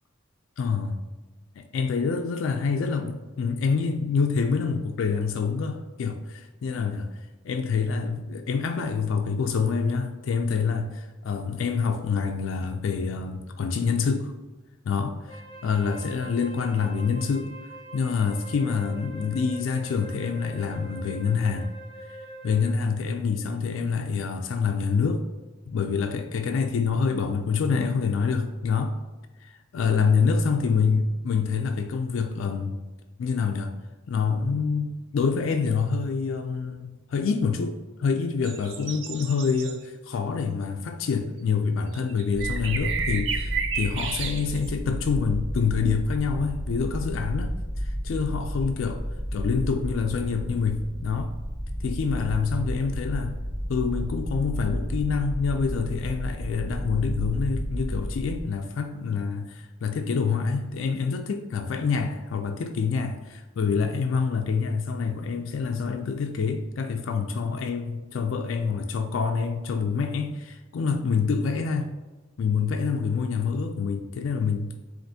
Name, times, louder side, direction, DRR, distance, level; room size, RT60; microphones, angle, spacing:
voice 1, 0.6-1.0 1.6-7.1 7.4-14.3 14.8-17.5 17.9-21.7 22.4-25.2 25.7-28.9 29.4-32.8 33.2-33.7 34.1-49.0 49.3-51.3 51.8-53.4 53.7-71.9 72.4-74.9, left 5 dB, 65° left, 5 dB, 0.3 m, -26 dB
Wind instrument woodwind instrument, 15.3-22.9, right 1 dB, 25° left, 0.8 m, -44 dB
sound 1, 38.4-39.8 41.9-44.7, right 6 dB, 60° right, 0.4 m, -32 dB
sound 2, 42.3-58.4, equal, 5° right, 1.0 m, -32 dB
7.4 x 2.5 x 2.7 m, 1.2 s
head